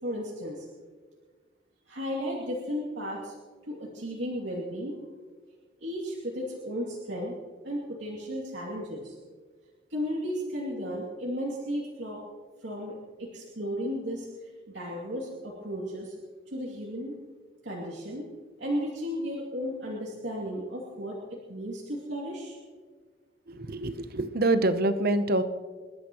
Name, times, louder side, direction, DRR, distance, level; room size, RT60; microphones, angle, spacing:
voice 1, 0.0-0.7 1.9-3.4 3.7-5.0 5.8-7.3 7.6-9.1 9.9-12.2 12.6-14.3 14.7-16.1 16.5-17.2 17.6-18.3 18.6-21.2 21.5-22.6, equal, 75° right, -4 dB, 2.6 m, -34 dB
voice 2, 23.5-25.4, right 2 dB, 55° right, 10 dB, 0.9 m, -26 dB
26.5 x 12.0 x 3.1 m, 1.5 s
head